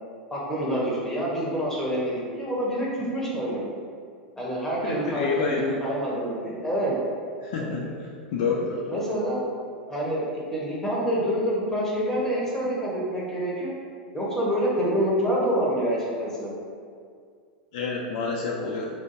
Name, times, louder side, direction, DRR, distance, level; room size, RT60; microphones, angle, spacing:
voice 1, 0.3-3.6 4.4-6.9 7.6-7.9 8.9-9.4 9.9-13.7 14.1-16.5, equal, 10° left, -5 dB, 0.9 m, -27 dB
voice 2, 4.8-5.8 7.4-8.8 17.7-18.9, left 4 dB, 55° left, -2 dB, 0.4 m, -29 dB
3.4 x 2.6 x 2.6 m, 2.2 s
figure-of-eight pair, 90°, 5 cm